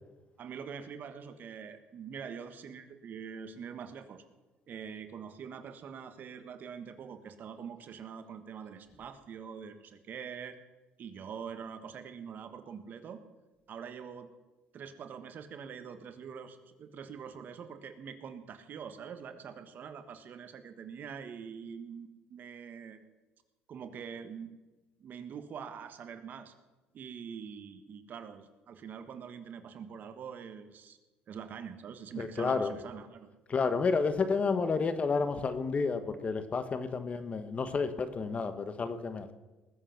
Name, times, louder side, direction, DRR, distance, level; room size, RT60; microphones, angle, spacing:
voice 1, 0.4-4.2 4.7-10.6 11.0-13.2 13.7-14.3 14.7-23.1 23.7-24.5 25.0-26.5 26.9-31.0 31.3-33.3, right 7 dB, 50° right, 9 dB, 1.4 m, -44 dB
voice 2, 32.2-32.7 33.5-39.3, left 4 dB, 35° left, 10 dB, 1.2 m, -30 dB
19.5 x 7.9 x 5.9 m, 1.2 s
cardioid pair, 110°, 4 cm